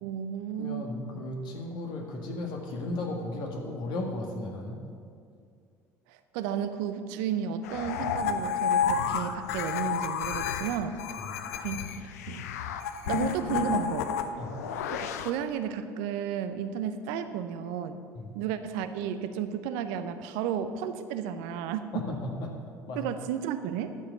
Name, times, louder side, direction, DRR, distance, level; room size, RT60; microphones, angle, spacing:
voice 1, 0.0-0.9 6.1-11.0 11.6-12.4 13.1-14.1 14.9-15.0 15.2-18.0 18.3-22.2 22.9-24.0, right 8 dB, 70° right, 10 dB, 0.6 m, -33 dB
voice 2, 0.6-4.8 11.2-11.3 14.4-14.6 18.1-18.3 21.9-22.5 22.9-23.1, left 2 dB, 60° left, 1 dB, 1.7 m, -35 dB
sound 1, 7.6-15.3, left 7 dB, 80° left, 0.5 m, -31 dB
11.5 x 5.1 x 6.6 m, 2.4 s
hypercardioid pair, 60°, 8 cm